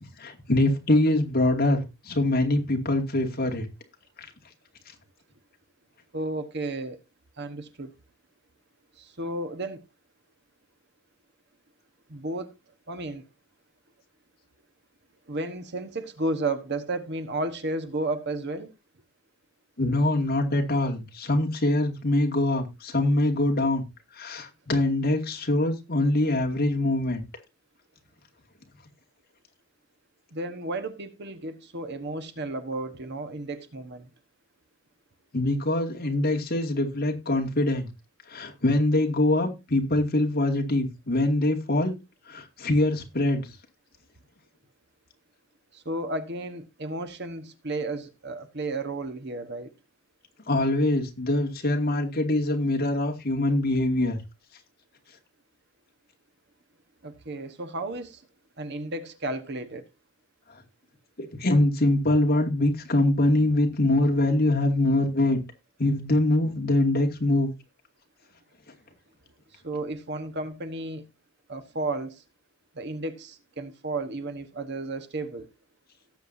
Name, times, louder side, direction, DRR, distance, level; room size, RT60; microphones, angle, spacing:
voice 1, 0.2-3.7 19.8-23.8 24.1-27.2 35.3-37.9 38.3-41.9 42.3-43.5 50.5-54.2 61.2-65.4 65.8-67.5, left 1 dB, 50° left, 2.4 m, -24 dB
voice 2, 6.1-7.0 7.4-7.9 9.0-9.8 12.1-12.5 12.9-13.2 15.3-18.7 30.3-34.1 45.7-49.7 57.0-58.2 58.6-59.8 69.6-71.1 71.5-72.2 72.7-75.5, right 2 dB, 55° right, 1.3 m, -33 dB
18.0 x 7.7 x 2.7 m
head